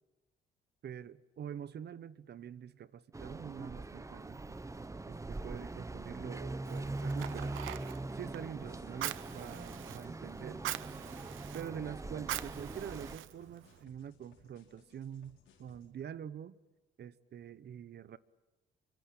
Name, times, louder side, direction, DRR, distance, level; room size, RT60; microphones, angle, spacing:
voice 1, 0.8-4.6 5.1-7.5 8.1-10.6 11.5-16.6 17.0-18.2, right 9 dB, 55° right, 1.0 m, -45 dB
sound 1, 3.1-13.2, right 2 dB, 15° right, 1.0 m, -42 dB
Fire, 6.6-13.8, right 14 dB, 80° right, 0.9 m, -44 dB
sound 2, 8.6-15.9, left 5 dB, 85° left, 5.0 m, -65 dB
25.5 x 24.5 x 8.8 m
cardioid pair, 90°, 20 cm